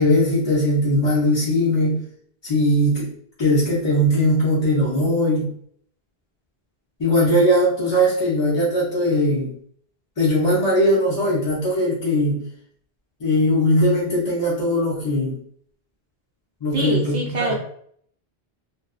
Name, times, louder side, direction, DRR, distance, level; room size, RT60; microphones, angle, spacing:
voice 1, 0.0-2.0 2.4-3.1 3.4-5.5 7.0-9.5 10.2-12.4 13.2-15.4 16.6-17.5, equal, 35° left, -6 dB, 0.5 m, -19 dB
voice 2, 16.7-17.5, right 2 dB, 50° right, -1 dB, 0.7 m, -24 dB
2.6 x 2.1 x 2.3 m, 0.62 s
omnidirectional pair, 1.0 m